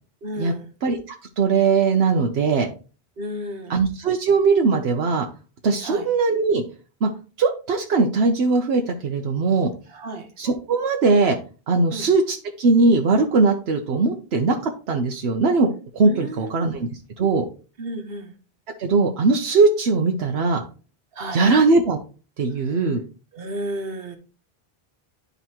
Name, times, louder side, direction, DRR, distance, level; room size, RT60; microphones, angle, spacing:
voice 1, 0.2-0.7 3.2-3.7 5.8-6.0 9.9-10.3 11.9-12.1 16.0-16.7 17.8-18.3 21.1-21.5 22.6-22.8 23.3-24.2, right 1 dB, 65° right, 6 dB, 1.3 m, -33 dB
voice 2, 1.4-2.7 3.7-5.3 5.6-6.6 7.0-7.1 7.4-9.7 10.4-11.4 11.7-16.9 17.2-17.4 18.8-20.6 21.3-22.0 22.4-23.0, right 4 dB, 85° right, 2 dB, 1.1 m, -20 dB
11.0 x 4.0 x 2.9 m, 0.35 s
omnidirectional pair, 1.0 m